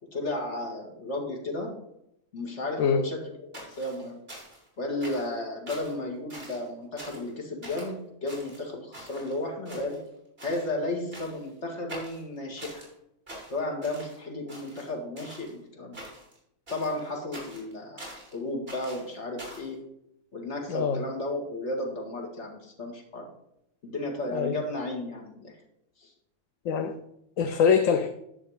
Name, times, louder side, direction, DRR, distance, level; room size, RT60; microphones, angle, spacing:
voice 1, 0.0-1.8 2.3-4.2 4.8-10.1 10.4-12.8 13.5-16.0 16.7-19.9 20.3-23.3 23.8-25.6 26.0-26.1, left 2 dB, 55° left, 1 dB, 2.1 m, -34 dB
sound 1, 3.5-4.7 5.0-5.4 5.7-6.0 6.3-6.7 7.0-7.3 7.6-7.9 8.3-9.3 9.6-10.1 10.4-10.7 11.1-11.5 11.9-12.9 13.3-14.2 14.5-15.5 15.9-16.4 16.7-18.3 18.7-19.7, right 1 dB, 45° right, 3.5 m, -45 dB
voice 2, 20.7-21.0 24.3-24.5 26.7-27.0 27.4-28.1, left 6 dB, 75° left, 7 dB, 1.1 m, -23 dB
10.0 x 6.5 x 4.9 m, 0.78 s
omnidirectional pair, 1.4 m